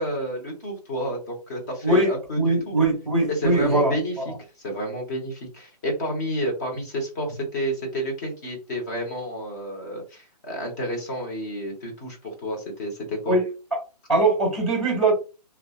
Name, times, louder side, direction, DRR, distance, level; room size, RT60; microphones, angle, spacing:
voice 1, 0.0-2.8 3.3-13.4, equal, 25° left, 0 dB, 0.8 m, -30 dB
voice 2, 2.4-4.3 13.3-13.5 13.7-13.8 14.1-15.1, right 2 dB, 5° left, -2 dB, 1.3 m, -21 dB
2.5 x 2.2 x 2.3 m, 0.32 s
hypercardioid pair, 160°, 21 cm